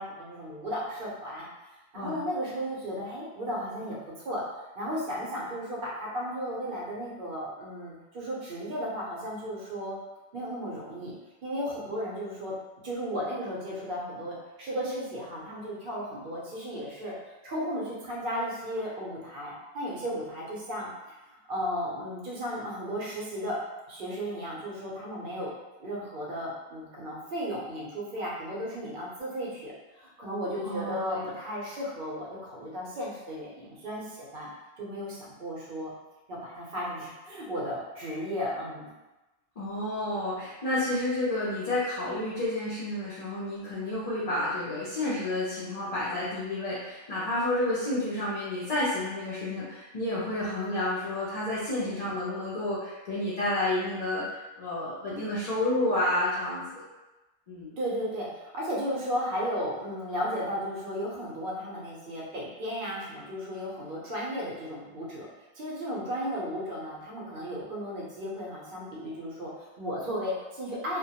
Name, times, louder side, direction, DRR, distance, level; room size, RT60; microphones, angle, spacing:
voice 1, 0.0-1.5 1.9-4.4 4.8-10.0 10.3-11.1 11.4-12.5 12.8-17.1 17.4-20.9 21.3-23.6 23.9-25.5 25.8-29.7 30.0-34.5 34.8-35.9 36.3-38.9 51.8-52.1 57.8-65.3 65.5-71.0, equal, 60° right, -5 dB, 0.8 m, -34 dB
voice 2, 30.6-31.3 39.6-56.8 57.5-57.7, left 1 dB, 50° left, -9 dB, 0.5 m, -30 dB
2.2 x 2.0 x 2.7 m, 1.1 s
omnidirectional pair, 1.1 m